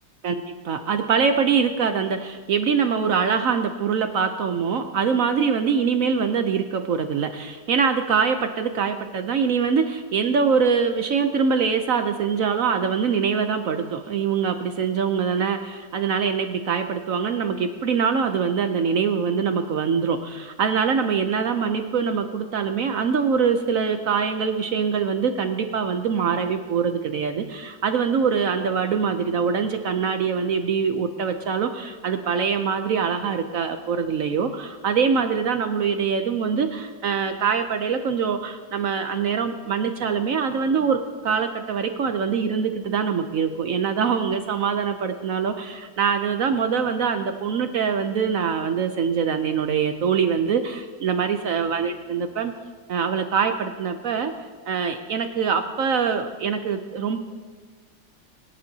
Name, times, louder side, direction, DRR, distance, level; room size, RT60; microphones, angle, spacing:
voice 1, 0.2-52.5 52.9-54.3 54.7-57.2, right 6 dB, 75° right, 7 dB, 0.7 m, -24 dB
22.0 x 10.5 x 2.8 m, 1.4 s
omnidirectional pair, 2.2 m